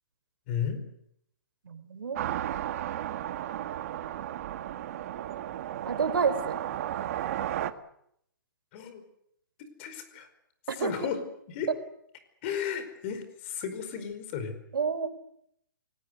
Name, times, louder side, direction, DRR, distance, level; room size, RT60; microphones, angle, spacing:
voice 1, 0.5-0.8 8.7-9.0 9.6-10.3 10.8-11.2 11.5-11.7 12.4-14.5, left 8 dB, 35° left, 10 dB, 4.9 m, -34 dB
voice 2, 1.6-2.3 5.9-6.6 10.7-10.9 11.7-11.8 14.7-15.1, right 5 dB, 80° right, 12 dB, 3.7 m, -29 dB
sound 1, 2.1-7.7, right 12 dB, 45° right, 1.7 m, -34 dB
27.0 x 19.5 x 8.2 m, 0.73 s
hypercardioid pair, 155°, 11 cm